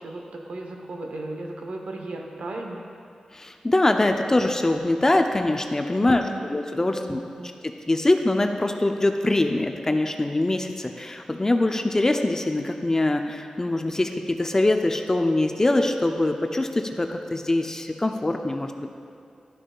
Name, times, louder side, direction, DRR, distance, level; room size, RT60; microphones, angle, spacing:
voice 1, 0.0-2.8 6.0-6.5 7.0-7.5, right 2 dB, 80° right, 1 dB, 0.8 m, -36 dB
voice 2, 3.3-7.2 7.6-18.9, left 2 dB, 25° left, 5 dB, 0.5 m, -23 dB
11.5 x 6.2 x 2.3 m, 2.5 s
wide cardioid pair, 75°, 2 cm